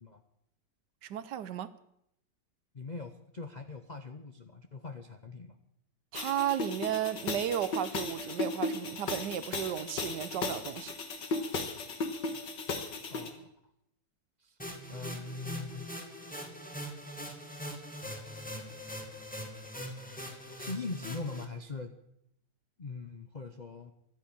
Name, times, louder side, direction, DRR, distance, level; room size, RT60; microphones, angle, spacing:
voice 1, 1.0-1.7 6.1-10.9, right 11 dB, 70° right, 1.3 m, -34 dB
voice 2, 2.7-5.6 13.1-13.5 14.4-14.6 14.9-15.9 20.6-21.9 22.8-23.9, left 3 dB, 45° left, 0.5 m, -41 dB
sound 1, 6.1-13.3, left 3 dB, 70° left, 2.2 m, -36 dB
sound 2, 14.6-21.4, equal, 5° left, 1.8 m, -42 dB
13.0 x 10.0 x 8.6 m
omnidirectional pair, 2.0 m